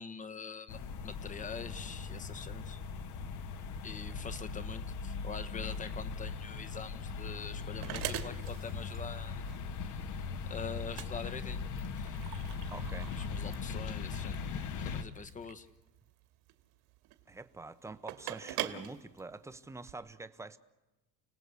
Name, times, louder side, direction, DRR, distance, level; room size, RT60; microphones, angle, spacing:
voice 1, 0.0-2.8 3.8-9.4 9.9-10.1 10.5-11.6 12.0-12.2 13.1-14.4 14.7-15.7, left 5 dB, 20° left, 11 dB, 1.3 m, -44 dB
sound 1, 0.7-15.0, left 5 dB, 50° left, 1.7 m, -39 dB
sound 2, 6.6-19.9, right 14 dB, 65° right, 2.4 m, -45 dB
voice 2, 12.7-13.2 17.3-20.6, right 3 dB, 5° right, 12 dB, 0.8 m, -46 dB
30.0 x 19.0 x 8.2 m, 1.1 s
cardioid pair, 160°, 38 cm